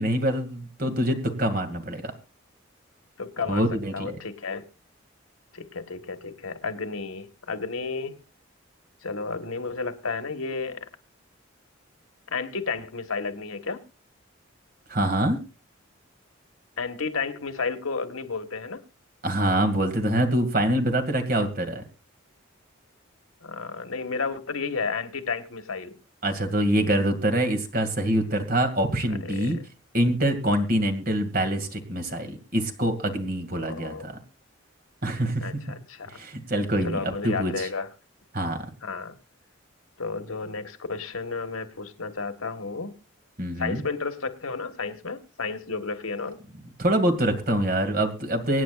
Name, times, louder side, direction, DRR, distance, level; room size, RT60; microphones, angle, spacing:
voice 1, 0.0-2.1 3.5-4.2 14.9-15.4 19.2-21.8 26.2-29.6 29.9-34.1 35.0-35.5 36.1-37.7 38.3-38.6 43.4-43.8 46.8-48.6, right 1 dB, 45° right, 2.2 m, -25 dB
voice 2, 3.2-3.6 3.9-4.6 5.5-8.2 9.0-10.9 12.3-13.8 16.8-18.8 23.4-26.0 29.1-29.6 33.6-34.2 35.4-36.2 36.8-37.9 38.8-39.2 40.0-42.9 43.6-46.4, left 4 dB, 90° left, 1.4 m, -32 dB
24.5 x 9.2 x 2.4 m
head